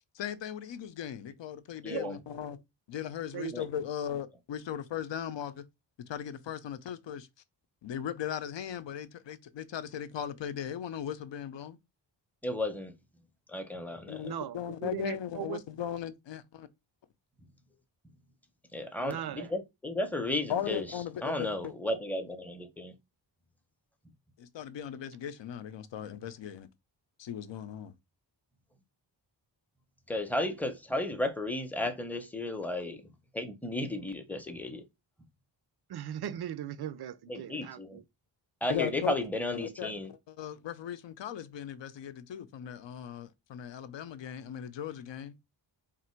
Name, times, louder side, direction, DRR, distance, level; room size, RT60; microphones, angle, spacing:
voice 1, 0.1-2.6 2.9-5.6 6.1-7.3 7.8-11.8 14.1-16.7 20.5-21.7 24.4-26.7 27.2-27.9 38.7-39.2 39.5-45.3, left 9 dB, 80° left, 0.7 m, -38 dB
voice 2, 1.8-2.1 3.5-3.6 12.4-12.9 13.5-14.2 18.7-20.8 21.2-22.9 30.1-33.0 33.3-34.8 37.3-38.0 38.6-40.1, left 1 dB, 5° left, 0.6 m, -34 dB
voice 3, 14.2-15.6 19.0-19.5 35.9-38.0, right 10 dB, 60° right, 0.5 m, -38 dB
3.6 x 2.5 x 4.4 m
wide cardioid pair, 135°, 44 cm